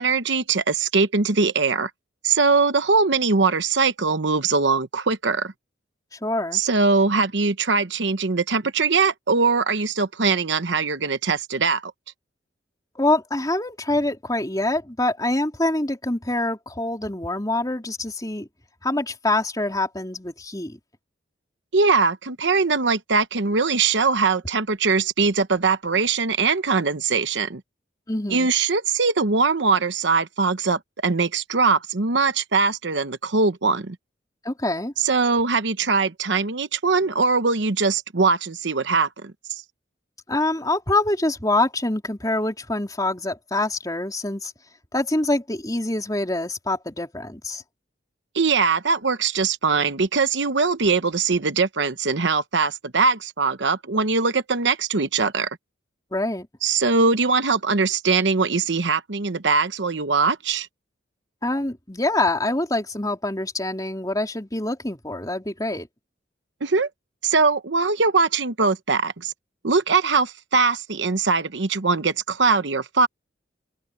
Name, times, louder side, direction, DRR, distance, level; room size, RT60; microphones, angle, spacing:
voice 1, 0.0-1.9 2.2-5.5 6.5-11.9 21.7-27.6 28.3-34.0 35.0-39.6 48.3-55.5 56.6-60.7 66.6-66.9 67.2-69.3 69.6-73.1, right 4 dB, 70° right, 1.0 m, -21 dB
voice 2, 6.1-6.6 13.0-18.5 18.8-20.8 28.1-28.5 34.4-34.9 40.3-44.5 44.9-47.6 56.1-56.5 61.4-65.9, left 2 dB, 20° left, 3.7 m, -25 dB
open air
head